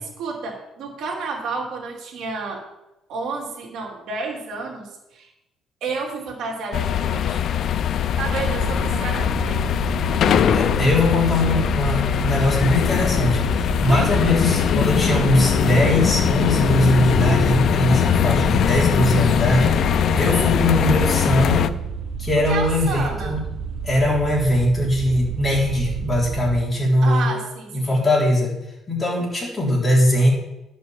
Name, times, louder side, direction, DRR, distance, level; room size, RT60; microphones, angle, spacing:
voice 1, 0.0-2.6 3.1-5.3 5.8-7.4 8.2-9.7 13.8-14.2 22.3-23.4 27.0-27.9, right 4 dB, 65° right, 0 dB, 2.7 m, -31 dB
sound 1, 6.7-21.7, left 8 dB, 50° left, 0.5 m, -21 dB
sound 2, 8.2-26.6, right 6 dB, 85° right, 1.6 m, -31 dB
voice 2, 10.5-19.9 20.1-21.7 22.2-23.4 23.8-27.3 27.7-28.5 28.9-30.3, left 1 dB, 15° left, -4 dB, 3.6 m, -20 dB
10.5 x 5.6 x 7.1 m, 0.94 s
cardioid pair, 150°, 0 cm